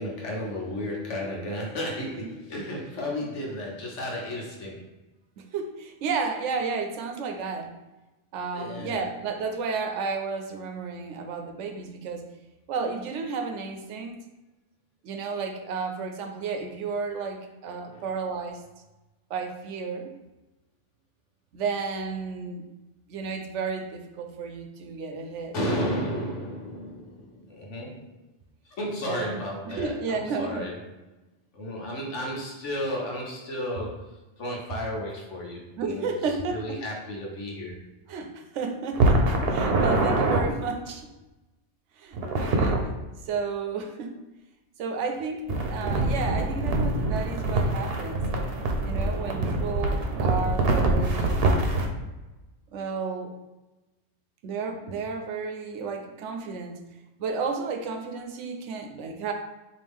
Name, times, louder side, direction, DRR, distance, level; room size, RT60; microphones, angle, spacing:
voice 1, 0.0-4.9 8.5-9.1 17.8-18.1 25.5-28.1 28.7-30.8 31.5-37.8, left 1 dB, 80° left, -1 dB, 1.3 m, -33 dB
voice 2, 5.4-7.7 8.3-12.3 12.7-14.2 15.0-18.6 19.3-20.1 21.5-22.6 23.1-25.5 29.1-29.3 29.7-30.7 35.8-36.8 38.1-41.1 42.0-42.9 43.2-44.2 44.8-48.3 48.8-51.6 52.7-53.3 54.4-56.8 57.2-59.3, right 4 dB, 85° right, 5 dB, 1.0 m, -32 dB
sound 1, 38.9-40.4 42.2-42.8 45.5-51.9, right 2 dB, 60° right, 0.9 m, -24 dB
4.4 x 2.8 x 3.5 m, 1.1 s
omnidirectional pair, 1.2 m